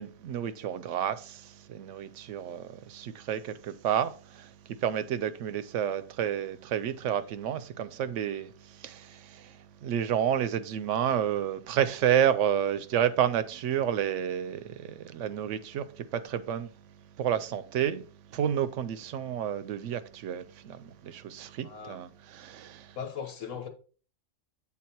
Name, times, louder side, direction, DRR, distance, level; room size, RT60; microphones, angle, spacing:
voice 1, 0.0-4.5 4.8-8.5 8.8-9.5 9.8-16.7 17.2-18.1 18.3-22.9, right 9 dB, 75° right, 0.9 m, -30 dB
voice 2, 21.6-22.0 23.0-23.7, left 7 dB, 80° left, 1.4 m, -38 dB
7.6 x 3.7 x 4.4 m
omnidirectional pair, 1.3 m